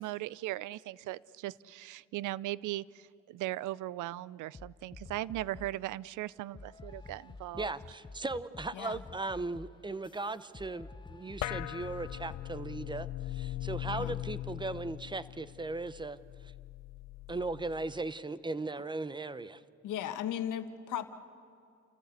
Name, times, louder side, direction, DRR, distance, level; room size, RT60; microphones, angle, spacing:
voice 1, 0.0-7.7, right 16 dB, 80° right, 22 dB, 0.5 m, -38 dB
sound 1, 4.5-5.8 6.5-12.5, left 3 dB, 15° left, 0.6 m, -50 dB
voice 2, 7.6-16.2 17.3-19.6, right 3 dB, 15° right, 15 dB, 0.8 m, -37 dB
sound 2, 11.4-18.1, left 15 dB, 60° left, 0.4 m, -41 dB
voice 3, 19.8-21.1, left 10 dB, 85° left, 9 dB, 1.4 m, -36 dB
29.5 x 14.0 x 8.2 m, 2.5 s
cardioid pair, 90°, 30 cm